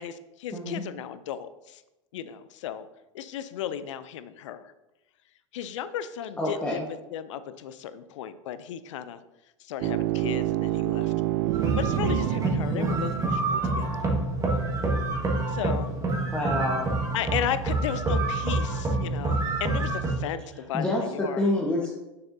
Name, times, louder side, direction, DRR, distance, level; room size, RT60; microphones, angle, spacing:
voice 1, 0.0-1.8 2.1-2.9 3.1-4.7 5.5-9.2 9.6-11.1 11.8-14.0 15.5-15.9 17.1-21.5, left 9 dB, 75° left, 13 dB, 0.5 m, -35 dB
voice 2, 6.4-6.9 12.7-13.1 16.3-16.9 20.7-21.9, left 1 dB, 10° left, -4 dB, 1.2 m, -28 dB
sound 1, 9.8-13.7, right 15 dB, 50° right, 0.4 m, -28 dB
sound 2, 11.5-20.1, right 2 dB, 20° right, 1.6 m, -27 dB
6.7 x 6.6 x 2.7 m, 0.99 s
hypercardioid pair, 90°, 16 cm